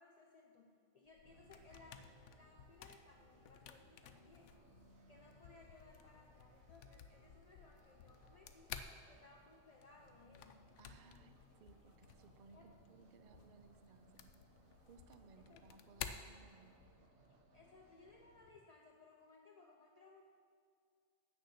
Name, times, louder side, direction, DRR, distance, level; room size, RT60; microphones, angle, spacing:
voice 1, 0.0-4.7 5.1-8.7 9.1-10.8 12.5-12.7 15.4-15.6 17.5-20.3, left 3 dB, 45° left, 0 dB, 0.5 m, -63 dB
sound 1, 1.1-17.1, left 8 dB, 65° left, 0.8 m, -55 dB
sound 2, 1.2-18.7, left 5 dB, 85° left, 1.2 m, -73 dB
sound 3, 1.2-18.4, right 3 dB, 75° right, 1.4 m, -68 dB
voice 2, 10.8-14.3 14.9-17.0, right 4 dB, 90° right, 8 dB, 0.3 m, -63 dB
8.6 x 6.6 x 6.4 m, 2.2 s
omnidirectional pair, 1.5 m